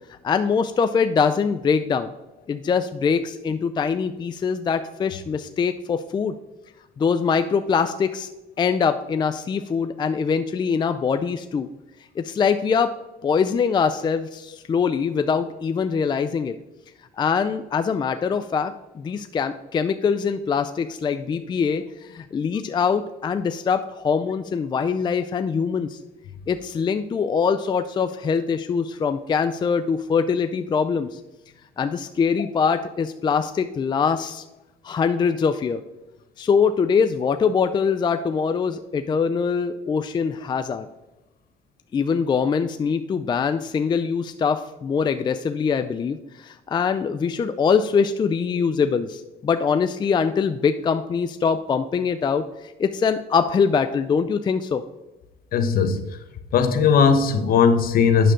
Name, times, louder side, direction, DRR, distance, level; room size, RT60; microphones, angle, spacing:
voice 1, 0.1-2.1 2.5-6.3 7.0-8.3 8.6-11.7 12.2-12.9 13.2-16.6 17.2-26.0 26.5-31.2 31.8-34.4 34.8-35.8 36.4-40.9 41.9-54.8, left 6 dB, 25° left, 9 dB, 0.4 m, -23 dB
voice 2, 55.5-56.0 56.5-58.3, left 6 dB, 60° left, 9 dB, 1.0 m, -18 dB
8.9 x 6.6 x 3.7 m, 0.99 s
cardioid pair, 110°, 17 cm